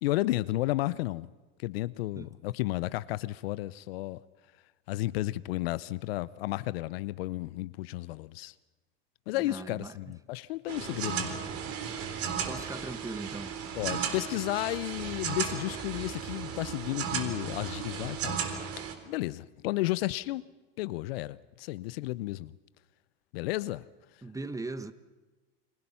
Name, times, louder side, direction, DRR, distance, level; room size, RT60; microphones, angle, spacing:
voice 1, 0.0-1.3 1.6-4.2 4.9-8.5 9.3-11.4 13.7-18.4 19.1-20.5 20.8-22.5 23.3-23.9, left 18 dB, 75° left, 0.7 m, -32 dB
voice 2, 9.4-10.0 12.5-13.6 24.2-24.9, right 2 dB, 10° right, 1.3 m, -39 dB
sound 1, 10.7-18.9, right 7 dB, 50° right, 3.6 m, -35 dB
29.5 x 22.0 x 5.7 m
hypercardioid pair, 100°, 30 cm